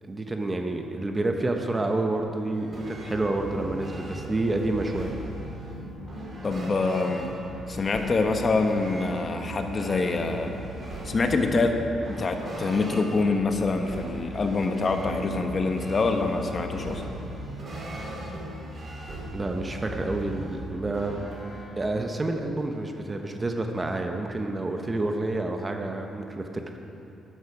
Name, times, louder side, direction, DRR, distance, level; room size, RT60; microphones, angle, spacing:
voice 1, 0.0-5.1 19.3-21.2 21.8-26.6, right 2 dB, 25° right, 4 dB, 0.9 m, -29 dB
sound 1, 2.5-21.6, right 1 dB, 40° right, 3.3 m, -38 dB
voice 2, 6.4-7.3 7.7-10.5 11.0-11.8 12.1-17.0, left 3 dB, 40° left, 5 dB, 1.1 m, -25 dB
12.0 x 11.0 x 4.8 m, 2.9 s
cardioid pair, 90°, 0 cm